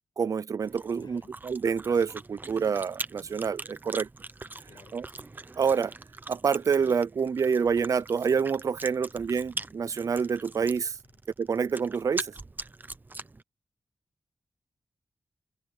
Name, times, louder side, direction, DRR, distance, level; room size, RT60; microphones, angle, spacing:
voice 1, 0.2-4.1 4.9-5.0 5.6-5.9 6.3-10.9 11.4-12.3, right 6 dB, 55° right, 0.4 m, -27 dB
Chewing mastication, 0.6-13.4, right 3 dB, 25° right, 0.7 m, -42 dB
voice 2, 0.9-1.4 4.7-5.2 11.0-11.2, left 6 dB, 80° left, 7.1 m, -57 dB
open air
wide cardioid pair, 125°, 7 cm